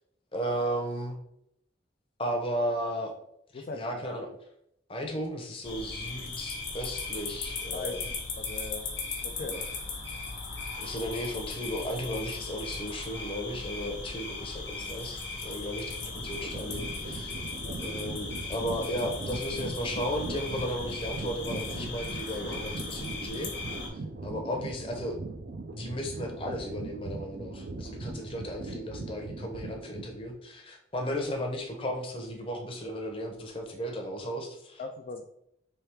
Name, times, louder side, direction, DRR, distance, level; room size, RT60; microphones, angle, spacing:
voice 1, 0.3-1.2 2.2-3.1 3.5-4.3 4.9-8.1 9.4-9.6 10.1-10.2 10.8-17.3 17.8-25.2 25.7-34.8, equal, 30° left, 3 dB, 0.7 m, -35 dB
voice 2, 3.5-4.1 7.7-8.9 9.2-9.6 17.6-17.8 34.8-35.3, left 3 dB, 45° left, 3 dB, 0.3 m, -40 dB
sound 1, 5.6-23.9, left 3 dB, 85° left, 1.2 m, -37 dB
sound 2, 16.1-30.3, right 2 dB, 60° right, 0.5 m, -40 dB
3.5 x 3.3 x 4.5 m, 0.75 s
head